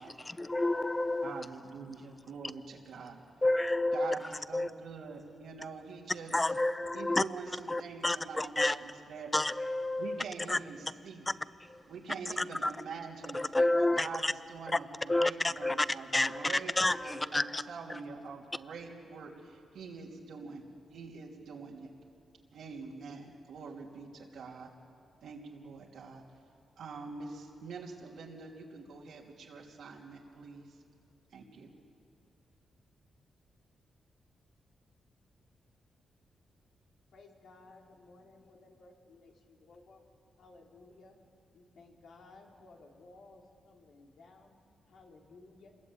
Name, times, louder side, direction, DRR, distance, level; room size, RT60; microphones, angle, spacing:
voice 1, 0.0-1.4 3.4-4.2 4.5-4.7 6.3-7.2 7.7-8.8 9.3-10.6 11.3-11.4 11.6-11.8 12.4-12.7 13.3-14.3 14.7-14.8 15.1-15.9 16.1-17.6 17.9-18.0, left 2 dB, 15° left, 15 dB, 0.7 m, -30 dB
voice 2, 1.2-3.2 3.9-6.3 6.9-9.3 10.0-11.2 11.9-13.4 13.8-20.6 20.9-21.9 22.5-24.7 25.2-26.2 26.8-30.7 31.3-31.7, right 4 dB, 85° right, -2 dB, 3.2 m, -45 dB
voice 3, 37.1-40.0 40.4-41.2 41.5-44.5 44.9-45.7, left 3 dB, 75° left, 0 dB, 3.7 m, -57 dB
27.0 x 21.0 x 8.9 m, 2.4 s
cardioid pair, 105°, 0 cm